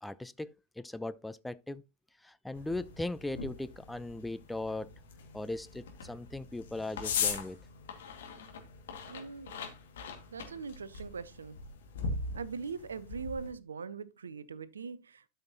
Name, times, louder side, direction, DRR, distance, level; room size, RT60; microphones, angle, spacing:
voice 1, 0.0-1.8 2.2-4.9 5.3-7.6, left 2 dB, 5° left, 0.3 m, -38 dB
sound 1, 2.5-13.5, left 5 dB, 60° left, 2.0 m, -40 dB
voice 2, 9.0-9.5 10.3-11.6 12.3-15.3, right 5 dB, 70° right, 0.6 m, -41 dB
12.0 x 5.7 x 2.9 m
figure-of-eight pair, 90°, 0 cm